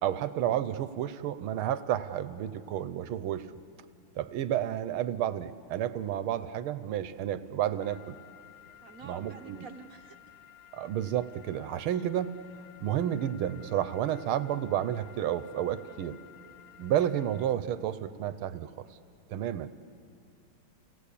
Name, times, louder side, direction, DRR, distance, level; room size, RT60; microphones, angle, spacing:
voice 1, 0.0-3.5 4.1-8.1 9.0-9.6 10.7-12.3 12.8-16.2 16.8-18.9 19.3-19.7, right 11 dB, 85° right, 13 dB, 1.6 m, -31 dB
sound 1, 7.8-17.5, left 12 dB, 55° left, 1.7 m, -54 dB
voice 2, 8.8-10.2 11.9-12.1 15.8-16.1, right 5 dB, 50° right, 6 dB, 1.2 m, -49 dB
29.5 x 18.5 x 8.5 m, 2.6 s
omnidirectional pair, 2.3 m